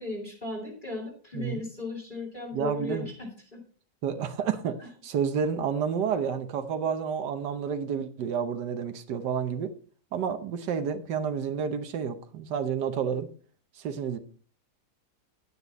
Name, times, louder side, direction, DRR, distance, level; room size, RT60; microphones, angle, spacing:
voice 1, 0.0-3.6 4.8-4.9, left 2 dB, 30° left, -2 dB, 2.6 m, -36 dB
voice 2, 2.5-3.1 4.0-9.7 10.1-13.3 13.8-14.2, right 7 dB, 90° right, 9 dB, 1.6 m, -30 dB
9.9 x 9.2 x 4.1 m, 0.43 s
omnidirectional pair, 1.8 m